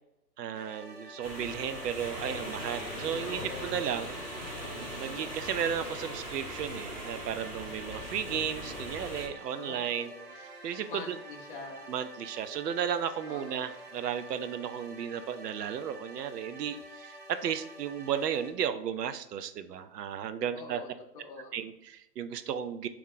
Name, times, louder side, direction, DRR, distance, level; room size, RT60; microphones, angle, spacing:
voice 1, 0.4-4.2 5.0-10.1 10.6-11.2 11.9-20.8 21.5-22.9, right 8 dB, 70° right, 11 dB, 0.5 m, -34 dB
sound 1, 0.5-18.5, right 2 dB, 40° right, 0.9 m, -48 dB
sound 2, 1.2-9.3, equal, 10° right, 0.8 m, -40 dB
voice 2, 3.2-3.8 9.5-10.4 10.9-11.9 13.3-13.8 20.5-20.9 21.1-21.6, left 3 dB, 35° left, 0 dB, 0.5 m, -44 dB
3.6 x 3.0 x 3.7 m, 0.85 s
hypercardioid pair, 135°, 50 cm